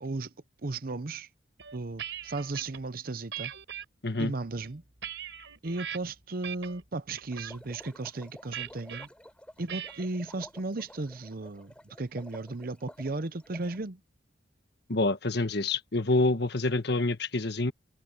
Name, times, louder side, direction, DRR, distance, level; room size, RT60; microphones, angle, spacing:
voice 1, 0.0-0.3 0.6-1.3 1.7-3.5 4.2-4.8 5.6-9.1 9.6-14.0, right 3 dB, 50° right, 0.8 m, -35 dB
sound 1, 1.6-2.8 3.3-3.8 4.5-6.0 6.4-6.8 7.2-7.5 8.5-9.1 9.7-10.1, right 9 dB, 75° right, 4.3 m, -40 dB
sound 2, 7.3-13.8, equal, 5° left, 7.3 m, -51 dB
voice 2, 14.9-17.7, left 2 dB, 60° left, 1.5 m, -27 dB
open air
head